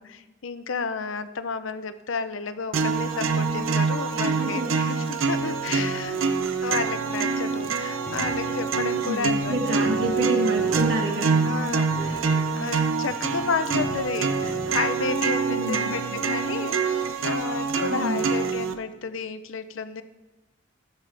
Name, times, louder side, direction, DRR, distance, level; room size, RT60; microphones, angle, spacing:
voice 1, 0.0-9.8 11.4-12.2 12.5-20.0, left 5 dB, 75° left, 12 dB, 0.6 m, -32 dB
sound 1, 2.7-18.7, right 5 dB, 80° right, 0.7 m, -25 dB
voice 2, 4.2-4.7 9.0-11.2 12.0-12.1 15.5-15.9 17.9-18.3, right 1 dB, 65° right, 1 dB, 1.9 m, -28 dB
sound 2, 7.2-14.9, left 2 dB, 40° left, 0.9 m, -42 dB
16.0 x 7.1 x 3.4 m, 1.1 s
head